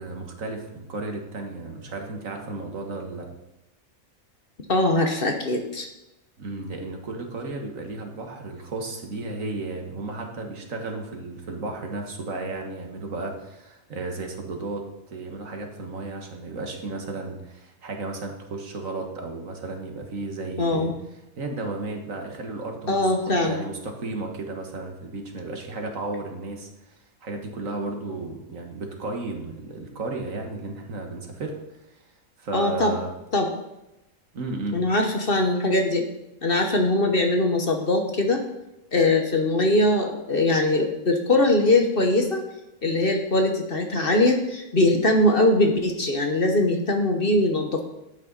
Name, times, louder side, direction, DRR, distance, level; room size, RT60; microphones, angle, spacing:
voice 1, 0.0-3.3 6.4-20.9 21.4-23.1 23.4-32.1 32.4-33.1 34.3-34.8, right 3 dB, 65° right, 3 dB, 1.9 m, -34 dB
voice 2, 4.7-5.9 20.6-20.9 22.9-23.6 32.5-32.9 33.3-33.5 34.7-36.0 36.4-38.4 38.9-42.4 42.8-47.8, left 2 dB, 40° left, 4 dB, 1.3 m, -21 dB
12.5 x 8.8 x 4.1 m, 0.92 s
omnidirectional pair, 1.5 m